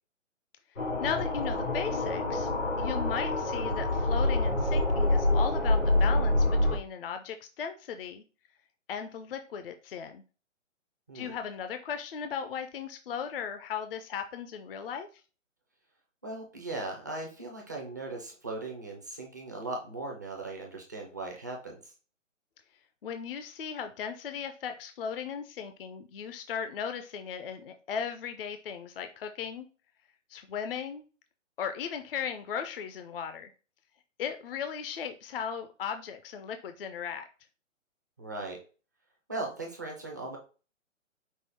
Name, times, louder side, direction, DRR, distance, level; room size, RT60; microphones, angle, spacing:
sound 1, 0.8-6.8, left 2 dB, 90° left, 2.5 m, -26 dB
voice 1, 0.8-2.5 2.8-8.2 8.9-10.2 11.1-15.1 23.0-29.7 30.3-31.0 31.6-33.5 34.2-37.2, left 7 dB, 50° left, 8 dB, 0.4 m, -37 dB
voice 2, 16.2-21.9 38.2-38.6 39.3-40.4, right 2 dB, 15° right, 0 dB, 0.4 m, -38 dB
5.4 x 2.0 x 4.2 m, 0.35 s
hypercardioid pair, 145°, 38 cm